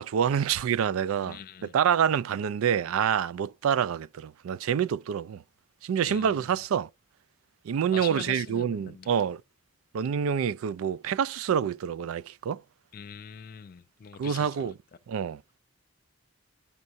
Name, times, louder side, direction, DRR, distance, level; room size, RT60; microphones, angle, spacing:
voice 1, 0.0-1.4 1.7-5.4 5.8-6.9 7.6-9.4 9.9-12.6 14.2-14.7 15.1-15.4, right 8 dB, 80° right, 0.3 m, -27 dB
voice 2, 1.2-1.7 6.0-6.6 7.9-9.1 12.9-14.7, left 7 dB, 45° left, 0.3 m, -43 dB
10.5 x 5.4 x 2.6 m
head